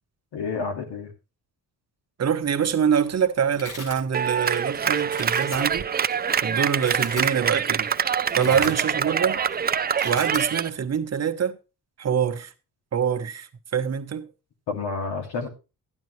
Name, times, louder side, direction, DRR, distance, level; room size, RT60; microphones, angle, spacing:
voice 1, 0.3-1.1 6.4-6.5 8.4-8.7 14.7-15.5, left 4 dB, 85° left, 2.7 m, -30 dB
voice 2, 2.2-5.9 6.4-7.9 8.3-9.4 10.0-11.6 12.0-12.5 12.9-14.3, right 7 dB, 40° right, 1.1 m, -25 dB
Domestic sounds home sounds, 2.5-2.9 3.1-4.0 4.5-4.7 5.0-5.6 6.2-6.3 6.7-7.3 7.7-7.9 8.2-9.1 9.4-9.5 9.8-10.5, left 2 dB, 50° left, 7.7 m, -38 dB
Clapping, 4.1-10.7, right 7 dB, 25° right, 0.4 m, -25 dB
12.0 x 10.5 x 3.2 m
cardioid pair, 100°, 39 cm